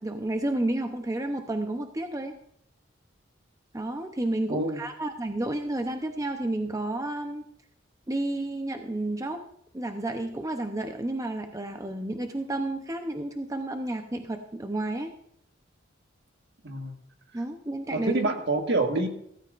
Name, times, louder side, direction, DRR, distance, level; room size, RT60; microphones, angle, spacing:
voice 1, 0.0-2.4 3.7-7.4 8.1-9.4 9.7-15.1 17.3-18.3, right 1 dB, 15° right, 5 dB, 0.7 m, -31 dB
voice 2, 4.5-4.8 16.6-17.0 17.9-19.1, right 2 dB, 60° right, 4 dB, 1.6 m, -27 dB
16.0 x 14.5 x 2.5 m, 0.73 s
head